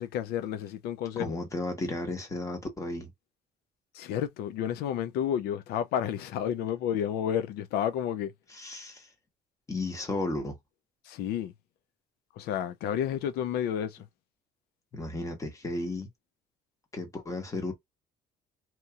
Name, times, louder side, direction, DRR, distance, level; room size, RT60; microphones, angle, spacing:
voice 1, 0.0-1.4 3.9-8.3 11.0-11.5 12.4-14.0, left 9 dB, 80° left, 0.4 m, -31 dB
voice 2, 1.2-3.1 8.5-9.1 9.7-10.6 14.9-16.1 16.9-17.7, left 2 dB, 20° left, 1.1 m, -34 dB
2.8 x 2.7 x 2.3 m
cardioid pair, 120°, 16 cm